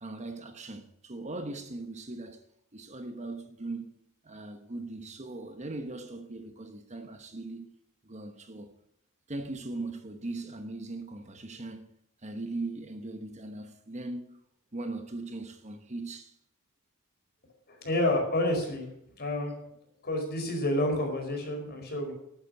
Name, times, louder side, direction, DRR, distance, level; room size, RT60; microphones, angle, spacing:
voice 1, 0.0-2.4 2.7-4.0 4.2-7.7 8.0-8.7 9.3-14.4 14.7-16.3, right 2 dB, 35° right, 1.1 m, -39 dB
voice 2, 17.7-18.9 19.2-19.5 20.0-22.1, left 1 dB, 50° left, 4.8 m, -29 dB
12.5 x 8.8 x 6.5 m
head